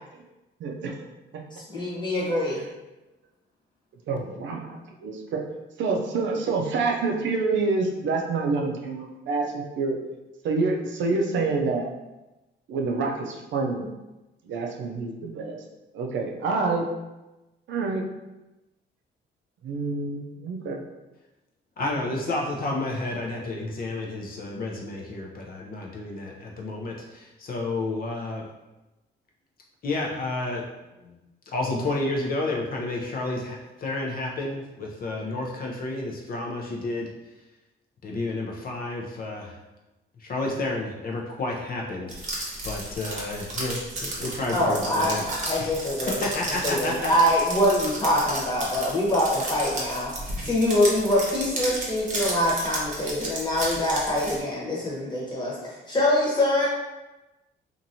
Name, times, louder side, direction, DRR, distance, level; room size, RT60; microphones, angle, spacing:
voice 1, 0.6-0.9 1.3-1.4 4.1-5.4 5.8-10.0 10.4-11.9 12.7-13.8 14.5-15.6 15.9-16.9 17.7-18.1 19.6-20.8, right 3 dB, 70° right, 1 dB, 0.5 m, -27 dB
voice 2, 1.5-2.6 44.5-46.2 46.6-56.7, left 1 dB, 20° left, -5 dB, 1.1 m, -24 dB
voice 3, 21.8-28.4 29.8-30.7 31.0-31.2 31.5-37.1 38.0-39.6 40.2-42.2 42.6-45.2 45.6-45.7 46.1-47.1, left 2 dB, 45° left, -1 dB, 0.5 m, -30 dB
sound 1, 42.1-54.4, right 1 dB, 40° right, 0.9 m, -33 dB
2.9 x 2.5 x 2.6 m, 1.0 s
cardioid pair, 90°, 20 cm